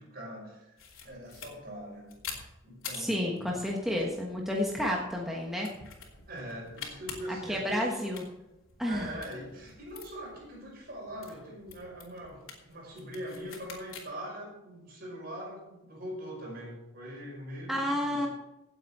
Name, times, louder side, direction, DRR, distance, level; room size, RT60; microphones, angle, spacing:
voice 1, 0.0-2.1 2.6-3.5 3.9-4.1 5.7-5.8 6.3-8.0 8.8-18.3, equal, 50° right, -1 dB, 5.4 m, -42 dB
sound 1, 0.8-14.1, left 6 dB, 80° left, 3.1 m, -48 dB
voice 2, 2.9-5.7 7.3-8.2 8.8-9.1 17.7-18.3, left 1 dB, ahead, -2 dB, 1.3 m, -31 dB
17.0 x 8.1 x 4.3 m, 0.94 s
head